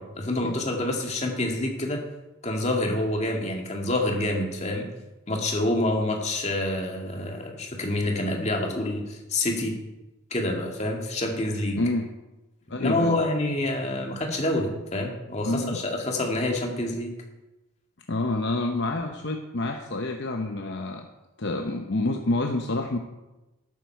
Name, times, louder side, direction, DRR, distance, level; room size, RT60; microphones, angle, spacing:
voice 1, 0.0-2.0 2.4-4.9 5.3-9.7 10.3-11.8 12.7-17.1, left 1 dB, 30° left, 1 dB, 2.1 m, -27 dB
voice 2, 11.8-12.1 12.7-13.2 15.4-15.8 18.1-21.1 21.4-23.0, left 2 dB, 50° left, 4 dB, 0.8 m, -28 dB
12.0 x 12.0 x 4.6 m, 1.1 s
head